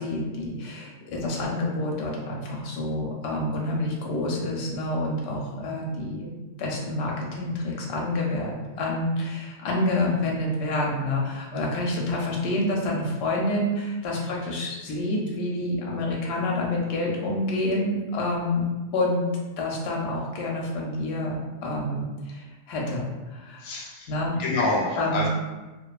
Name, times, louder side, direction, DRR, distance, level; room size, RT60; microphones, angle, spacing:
voice 1, 0.0-6.3 6.6-18.6 18.9-19.2 19.6-23.7 24.1-24.3 25.0-25.3, left 1 dB, 65° left, -2 dB, 0.7 m, -28 dB
voice 2, 23.6-25.3, left 2 dB, 85° left, -2 dB, 1.0 m, -27 dB
2.4 x 2.3 x 2.3 m, 1.1 s
omnidirectional pair, 1.4 m